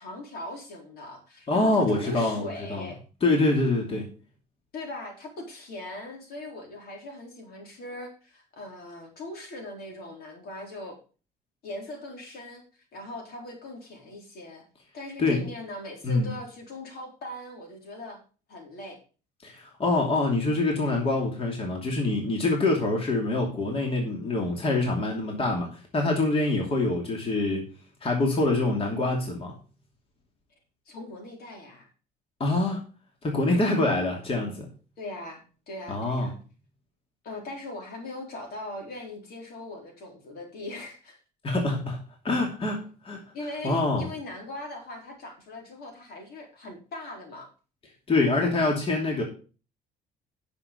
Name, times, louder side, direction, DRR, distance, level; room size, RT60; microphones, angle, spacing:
voice 1, 0.0-3.0 4.7-11.0 11.6-14.6 14.9-18.2 18.5-19.0 30.9-31.9 35.0-36.3 37.2-41.2 43.3-47.5, left 2 dB, 65° left, 1 dB, 4.0 m, -40 dB
voice 2, 1.5-2.9 3.2-4.1 15.2-15.4 16.0-16.3 19.4-27.6 28.0-29.5 32.4-32.8 33.2-34.7 35.9-36.3 41.4-42.0 42.2-43.2 43.6-44.1 48.1-49.2, left 2 dB, 35° left, 0 dB, 2.8 m, -25 dB
9.8 x 6.6 x 5.3 m, 0.36 s
cardioid pair, 110°, 17 cm